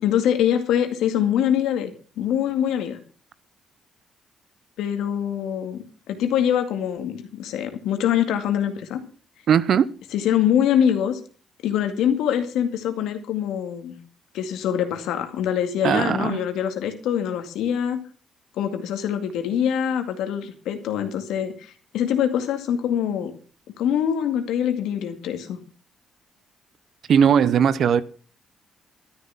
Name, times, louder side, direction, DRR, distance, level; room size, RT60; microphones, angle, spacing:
voice 1, 0.0-3.0 4.8-9.0 10.1-11.2 11.6-14.0 14.3-18.0 18.6-23.3 23.8-25.6, left 9 dB, 85° left, 7 dB, 2.2 m, -24 dB
voice 2, 9.5-9.9 15.8-16.4 27.1-28.0, right 8 dB, 60° right, 18 dB, 0.9 m, -18 dB
13.0 x 10.0 x 5.9 m, 0.39 s
cardioid pair, 90°, 0 cm